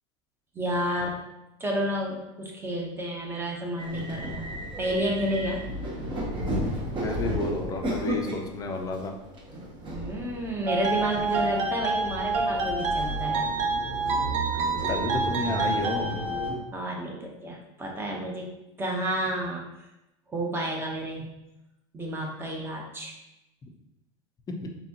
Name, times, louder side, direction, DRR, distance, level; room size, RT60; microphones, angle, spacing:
voice 1, 0.5-1.2 1.6-4.4 4.8-5.6 9.9-13.4 16.7-18.5 18.8-19.6 20.3-21.2 21.9-23.1, right 1 dB, 15° right, 0 dB, 1.0 m, -30 dB
sound 1, 3.8-16.5, right 1 dB, 30° right, 1.1 m, -34 dB
voice 2, 7.0-9.1 14.9-16.2 24.5-24.7, left 2 dB, 25° left, 3 dB, 0.7 m, -31 dB
sound 2, 10.7-16.5, right 3 dB, 45° right, 0.7 m, -28 dB
4.0 x 3.4 x 3.0 m, 0.93 s
supercardioid pair, 120°, 16 cm